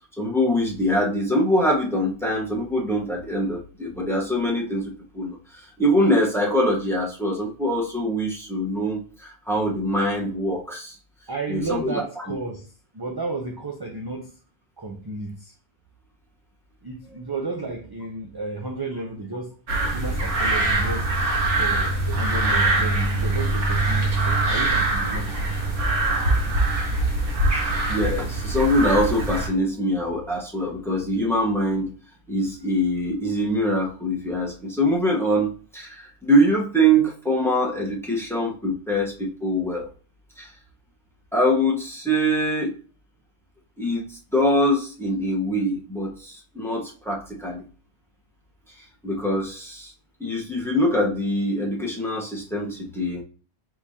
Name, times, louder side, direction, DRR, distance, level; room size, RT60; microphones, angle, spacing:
voice 1, 0.2-10.9 11.5-12.4 17.1-17.2 19.8-19.9 27.9-31.9 32.3-39.9 40.4-40.5 41.3-42.7 43.8-47.6 49.0-49.9 50.2-53.2, equal, ahead, 0.9 m, -24 dB
voice 2, 11.3-12.7 12.9-14.3 14.8-15.5 16.8-19.5 19.9-21.1 21.6-25.7, right 3 dB, 30° right, 0.4 m, -32 dB
sound 1, 19.7-29.5, right 2 dB, 90° right, 1.5 m, -23 dB
4.6 x 3.7 x 2.8 m
omnidirectional pair, 1.2 m